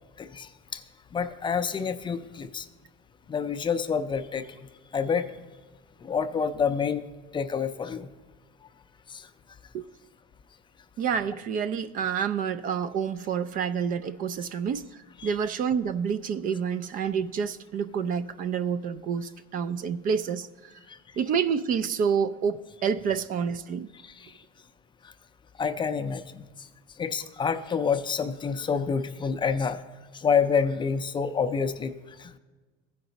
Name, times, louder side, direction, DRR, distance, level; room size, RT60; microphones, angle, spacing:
voice 1, 0.2-0.8 1.1-2.7 3.3-4.5 4.9-5.3 6.0-7.0 7.3-8.1 9.1-9.2 15.2-15.4 25.6-26.4 27.0-29.8 30.1-31.9 32.2-32.4, left 6 dB, 20° left, 10 dB, 0.4 m, -28 dB
voice 2, 11.0-14.8 15.2-20.5 21.2-23.9, right 7 dB, 40° right, 13 dB, 0.4 m, -28 dB
15.0 x 5.2 x 3.9 m, 1.3 s
supercardioid pair, 115°, 21 cm